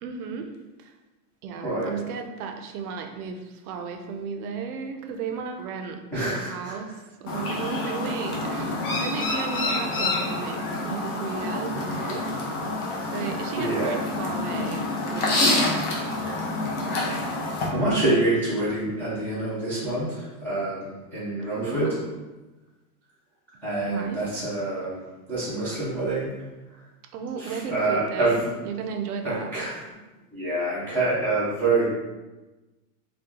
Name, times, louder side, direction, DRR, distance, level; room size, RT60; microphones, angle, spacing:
voice 1, 0.0-0.5 0.8-0.9 1.4-6.0 6.3-12.3 13.1-15.9 21.5-22.1 23.9-24.3 27.1-29.5, right 6 dB, 75° right, 5 dB, 0.6 m, -34 dB
voice 2, 6.1-6.7 13.6-14.0 17.7-21.9 23.6-25.0 25.3-26.3 27.4-28.5 29.2-29.7 30.3-31.9, right 2 dB, 5° left, -14 dB, 0.4 m, -26 dB
Chirp tweet, 7.3-17.7, left 2 dB, 40° left, 0.7 m, -27 dB
2.9 x 2.3 x 3.5 m, 1.1 s
supercardioid pair, 165°, 45 cm